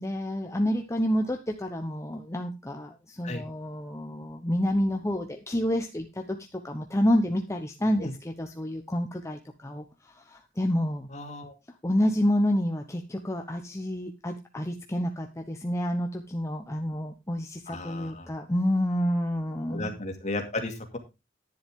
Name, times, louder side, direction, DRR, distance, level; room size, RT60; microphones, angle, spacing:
voice 1, 0.0-11.1 11.8-19.9, equal, 15° left, 3 dB, 1.0 m, -29 dB
voice 2, 11.1-11.5 17.7-18.3 19.7-21.0, left 2 dB, 40° left, 5 dB, 2.4 m, -34 dB
10.5 x 10.5 x 3.7 m, 0.26 s
head